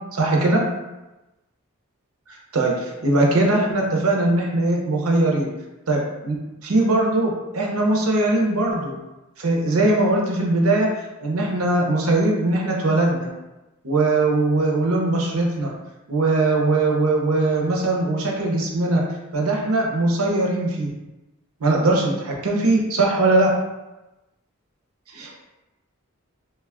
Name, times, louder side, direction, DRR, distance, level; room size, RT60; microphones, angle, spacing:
voice 1, 0.1-0.6 2.5-5.5 5.9-6.4 6.6-9.0 9.4-10.9 11.2-13.3 13.8-15.7 16.1-19.0 19.3-20.9 21.6-23.5 25.1-25.4, right 2 dB, 85° right, -1 dB, 0.7 m, -20 dB
2.9 x 2.3 x 3.5 m, 1.0 s
head